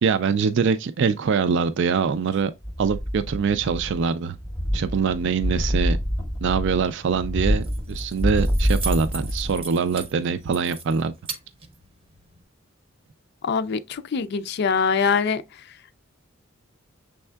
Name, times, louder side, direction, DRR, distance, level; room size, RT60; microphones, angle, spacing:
voice 1, 0.0-2.5 2.8-4.4 4.7-6.0 6.4-11.1, right 6 dB, 65° right, 0.4 m, -23 dB
sound 1, 2.6-4.1 4.3-9.7 10.0-10.1, equal, 10° left, 0.8 m, -26 dB
Keys jangling, 7.4-12.4, right 4 dB, 30° right, 0.7 m, -39 dB
voice 2, 13.4-15.4, left 5 dB, 55° left, 0.4 m, -23 dB
6.4 x 3.5 x 2.2 m
head